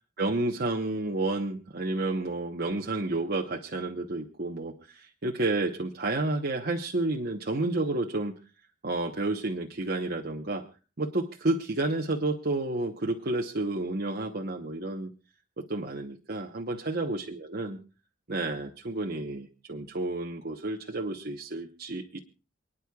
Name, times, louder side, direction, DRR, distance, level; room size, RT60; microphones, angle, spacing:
voice 1, 0.2-8.4 8.8-10.6 11.0-15.1 15.6-17.2 17.5-17.8 18.3-22.2, right 2 dB, 55° right, 1 dB, 1.0 m, -30 dB
28.5 x 9.9 x 2.3 m, 0.35 s
head